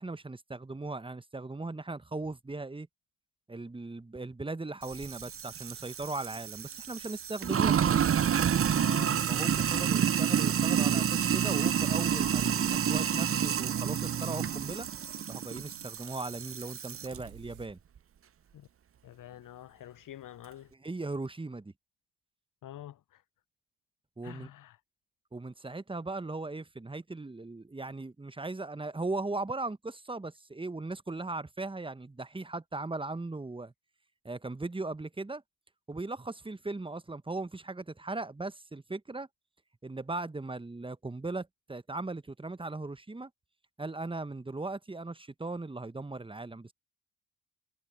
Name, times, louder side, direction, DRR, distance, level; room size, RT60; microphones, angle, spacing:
voice 1, 0.0-2.9 3.5-7.9 9.3-14.9 15.3-17.8 20.8-21.7 24.2-24.5 25.3-33.7 34.2-35.4 35.9-39.3 39.8-43.3 43.8-46.7, right 2 dB, 10° right, 1.0 m, -38 dB
Sink (filling or washing), 4.9-17.2, right 8 dB, 30° right, 0.6 m, -29 dB
voice 2, 8.7-9.2 18.5-18.7 19.0-20.7 22.6-23.2 24.2-24.8, left 12 dB, 40° left, 0.7 m, -46 dB
sound 1, 11.8-17.7, right 19 dB, 75° right, 2.6 m, -54 dB
hypercardioid pair, 45°, 48 cm